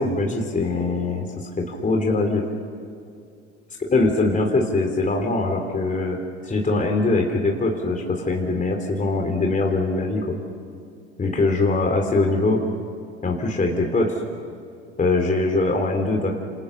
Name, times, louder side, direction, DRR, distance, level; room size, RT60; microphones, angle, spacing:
voice 1, 0.0-2.5 3.9-6.2 6.4-10.4 11.2-12.6 13.2-14.2 15.0-16.3, left 2 dB, 20° left, 2 dB, 3.7 m, -22 dB
28.5 x 28.0 x 6.8 m, 2.4 s
hypercardioid pair, 85°, 35 cm